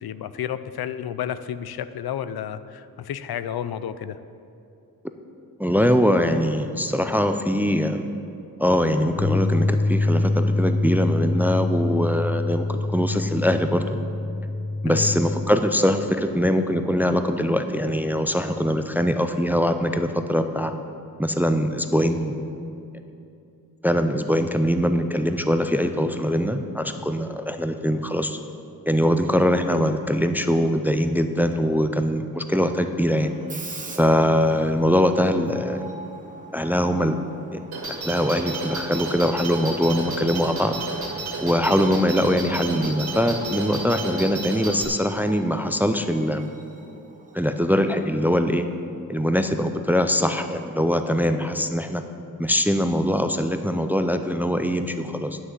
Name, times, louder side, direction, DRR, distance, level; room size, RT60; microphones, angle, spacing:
voice 1, 0.0-4.2 14.8-15.1, left 9 dB, 85° left, 13 dB, 0.5 m, -31 dB
voice 2, 5.6-8.1 8.6-14.0 14.8-20.7 21.2-22.4 23.8-28.4 28.9-33.3 34.0-35.8 36.5-37.2 37.5-37.6 37.9-40.7 41.4-46.5 47.3-48.6 49.1-52.0 52.4-55.4, equal, 5° right, 8 dB, 0.3 m, -22 dB
Bass guitar, 9.2-15.4, left 2 dB, 20° left, 0.9 m, -25 dB
Screech, 33.2-49.7, right 3 dB, 20° right, 0.8 m, -43 dB
sound 1, 37.7-44.9, right 3 dB, 85° right, 2.3 m, -32 dB
9.6 x 6.3 x 7.8 m, 2.6 s
wide cardioid pair, 160°, 36 cm